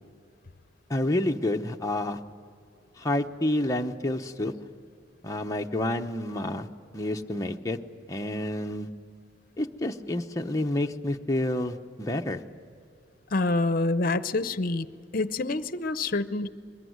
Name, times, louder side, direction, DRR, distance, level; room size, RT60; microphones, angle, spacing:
voice 1, 0.9-2.2 3.0-4.5 5.2-6.7 6.9-7.8 8.1-8.9 9.6-12.4, left 1 dB, 20° left, 3 dB, 0.9 m, -29 dB
voice 2, 13.3-14.9 15.1-16.5, left 2 dB, 50° left, 13 dB, 0.8 m, -26 dB
23.0 x 21.0 x 9.4 m, 2.4 s
head